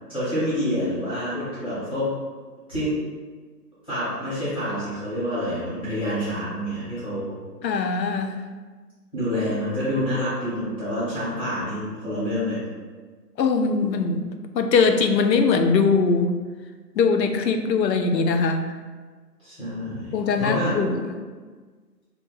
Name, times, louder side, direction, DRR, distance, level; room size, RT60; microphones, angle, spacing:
voice 1, 0.1-2.1 2.7-3.0 3.9-7.4 9.1-12.6 19.4-20.9, equal, 10° left, -14 dB, 0.7 m, -27 dB
voice 2, 7.6-8.4 13.4-14.2 14.5-16.3 17.0-18.7 20.1-21.0, left 4 dB, 85° left, 6 dB, 0.5 m, -21 dB
2.7 x 2.1 x 3.9 m, 1.4 s
figure-of-eight pair, 155°, 49 cm